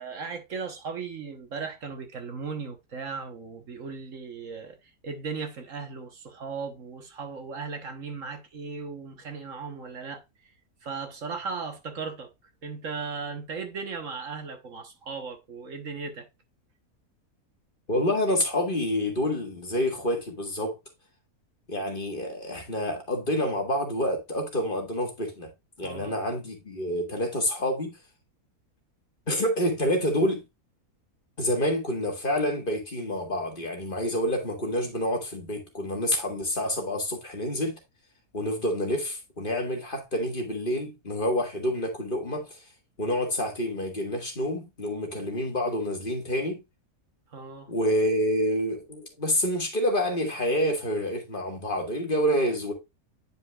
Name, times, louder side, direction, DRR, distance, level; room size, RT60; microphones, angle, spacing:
voice 1, 0.0-10.2 10.8-12.3 12.6-16.3 25.8-26.2 47.3-47.7, right 5 dB, 60° right, 1.5 m, -37 dB
voice 2, 17.9-20.8 21.7-25.5 25.8-28.0 29.3-30.4 31.4-37.8 38.3-42.6 43.0-46.6 47.7-52.7, equal, 35° left, 1.9 m, -28 dB
10.0 x 4.9 x 2.3 m
omnidirectional pair, 1.6 m